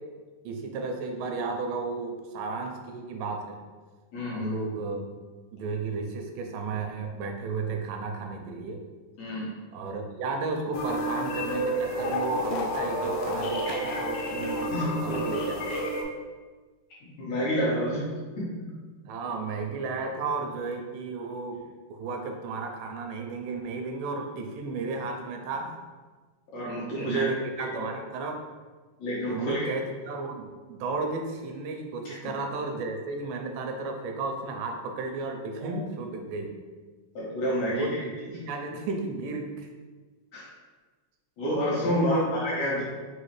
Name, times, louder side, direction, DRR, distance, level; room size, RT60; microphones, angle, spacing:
voice 1, 0.5-3.6 4.3-5.1 5.5-8.8 9.7-15.7 19.1-21.6 21.9-25.8 27.0-28.4 29.3-36.5 37.7-39.7 41.8-42.3, right 3 dB, 85° right, 4 dB, 2.2 m, -33 dB
voice 2, 4.1-4.6 9.2-9.5 14.7-15.0 17.2-18.1 26.5-27.3 27.6-27.8 29.0-29.7 32.1-32.2 35.6-35.7 37.2-38.3 40.3-40.5 41.4-42.8, equal, 70° left, -7 dB, 1.9 m, -29 dB
sound 1, 10.7-16.0, equal, 85° left, 2.3 m, -30 dB
5.6 x 2.6 x 3.1 m, 1.4 s
omnidirectional pair, 3.9 m